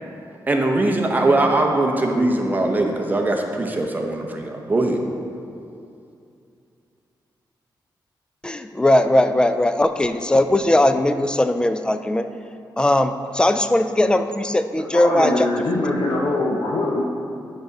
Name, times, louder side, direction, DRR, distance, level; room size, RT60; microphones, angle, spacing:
voice 1, 0.5-5.0, right 2 dB, 20° right, 2 dB, 0.8 m, -21 dB
voice 2, 8.4-12.3 12.8-15.5, left 1 dB, 10° left, 9 dB, 0.3 m, -19 dB
voice 3, 14.9-17.0, left 2 dB, 65° left, -3 dB, 0.8 m, -22 dB
8.7 x 4.0 x 5.3 m, 2.6 s
wide cardioid pair, 120°, 8 cm